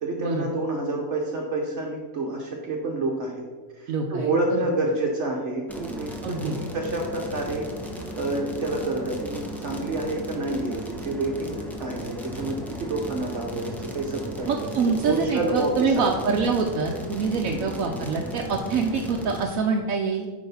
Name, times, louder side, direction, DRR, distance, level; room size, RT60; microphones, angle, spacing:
voice 1, 0.0-3.4 3.7-7.7 8.2-14.5 15.0-16.3 17.5-17.7, right 2 dB, 60° right, 0 dB, 1.2 m, -28 dB
voice 2, 3.9-4.6 6.2-6.6 14.5-20.3, right 5 dB, 85° right, 1 dB, 1.1 m, -25 dB
sound 1, 5.7-19.4, equal, ahead, 0.6 m, -36 dB
9.1 x 3.2 x 5.5 m, 1.5 s
omnidirectional pair, 1.4 m